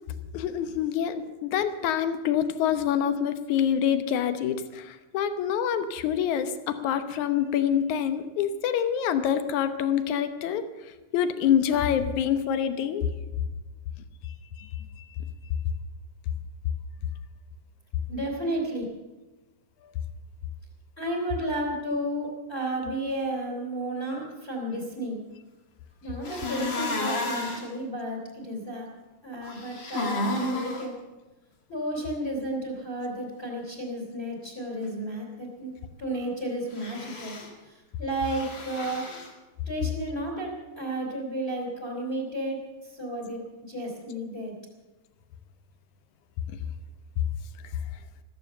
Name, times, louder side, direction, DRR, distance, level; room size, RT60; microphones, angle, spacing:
voice 1, 0.3-10.7 11.1-13.1 14.6-14.7, left 9 dB, 70° left, 10 dB, 2.2 m, -26 dB
voice 2, 18.1-18.8 21.0-25.2 26.0-28.9 29.2-31.0 31.7-35.7 36.0-37.4 37.6-39.2 39.7-44.5, right 1 dB, 20° left, -1 dB, 3.0 m, -32 dB
sound 1, 26.2-27.7 29.4-30.8 36.7-37.5 38.2-39.3, left 2 dB, 40° left, 2.5 m, -32 dB
14.5 x 14.0 x 6.7 m, 1.2 s
omnidirectional pair, 3.9 m